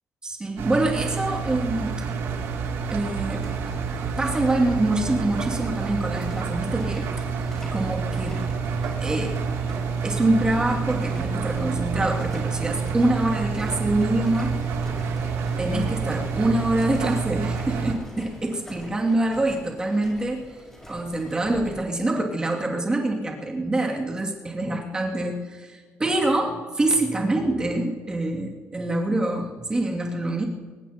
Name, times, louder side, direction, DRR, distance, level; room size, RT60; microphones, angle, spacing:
voice 1, 0.2-2.0 2.9-3.4 4.2-7.1 7.6-8.4 9.0-9.4 10.0-14.5 15.6-20.6 20.9-30.4, right 2 dB, 15° right, -1 dB, 2.6 m, -25 dB
Engine, 0.6-17.9, right 5 dB, 80° right, 2.9 m, -28 dB
sound 1, 3.0-21.9, equal, 10° left, 5.0 m, -46 dB
23.5 x 19.5 x 3.0 m, 1.5 s
cardioid pair, 160°, 5 cm